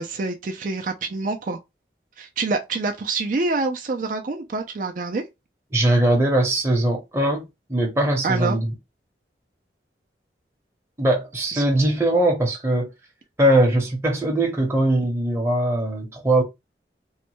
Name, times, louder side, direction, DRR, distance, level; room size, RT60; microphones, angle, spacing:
voice 1, 0.0-1.6 2.2-5.2 8.2-8.6 11.5-11.6, right 3 dB, 45° right, 0.4 m, -26 dB
voice 2, 5.7-8.7 11.0-12.9 13.4-16.4, right 1 dB, 15° right, 0.7 m, -21 dB
3.1 x 2.1 x 3.0 m
head